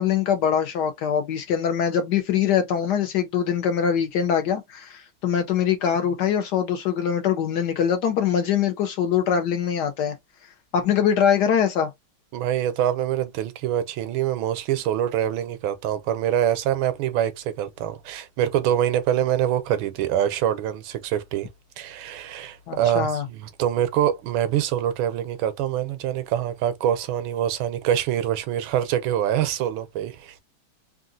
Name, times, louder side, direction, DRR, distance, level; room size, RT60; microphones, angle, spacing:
voice 1, 0.0-10.1 10.7-11.9 22.7-23.2, left 8 dB, 70° left, 1.0 m, -23 dB
voice 2, 12.3-21.5 21.8-30.3, right 11 dB, 85° right, 1.4 m, -25 dB
3.6 x 2.4 x 2.5 m
omnidirectional pair, 2.2 m